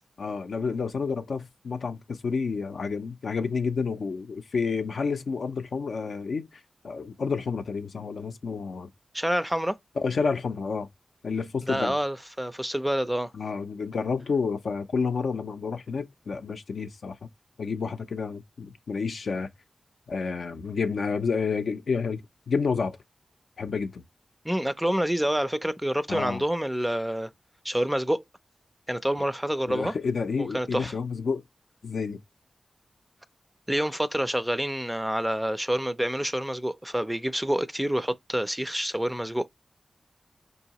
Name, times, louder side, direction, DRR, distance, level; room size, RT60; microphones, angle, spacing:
voice 1, 0.2-8.9 10.0-10.9 11.2-12.0 13.3-17.2 17.6-19.5 20.1-22.2 22.5-23.0 23.6-24.0 26.1-26.4 29.7-31.4 31.8-32.2, left 5 dB, 80° left, 0.5 m, -30 dB
voice 2, 9.1-9.8 11.7-13.3 24.4-27.3 27.6-28.2 28.9-29.9 30.4-30.9 33.7-39.5, equal, 5° right, 0.4 m, -27 dB
4.6 x 2.8 x 2.8 m
wide cardioid pair, 80°, 0 cm